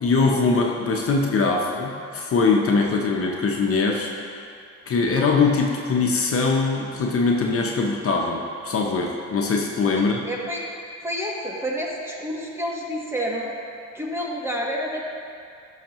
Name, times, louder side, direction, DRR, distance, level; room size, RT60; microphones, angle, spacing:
voice 1, 0.0-4.1 4.9-10.2, left 4 dB, 50° left, 0 dB, 0.9 m, -22 dB
voice 2, 10.0-10.6 11.0-13.5 13.9-15.1, equal, 10° right, -3 dB, 1.4 m, -29 dB
12.5 x 5.8 x 3.1 m, 2.4 s
cardioid pair, 90°, 30 cm